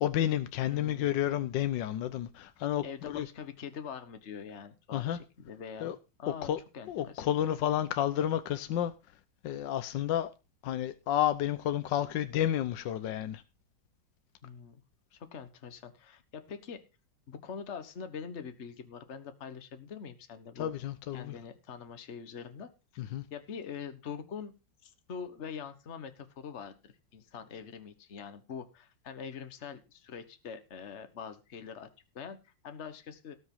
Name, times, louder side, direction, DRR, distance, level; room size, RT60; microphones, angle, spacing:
voice 1, 0.0-3.3 4.9-5.2 5.8-6.0 6.4-6.6 6.9-8.9 9.4-10.3 10.6-13.4 20.6-21.3 23.0-23.2, left 11 dB, 80° left, 1.5 m, -31 dB
voice 2, 0.7-1.2 2.8-5.9 6.2-7.2 14.4-14.8 15.1-16.8 17.3-20.7 21.1-23.0 23.3-24.5 24.8-31.9 32.1-33.4, left 6 dB, 40° left, 1.5 m, -44 dB
18.0 x 6.2 x 5.5 m
omnidirectional pair, 1.9 m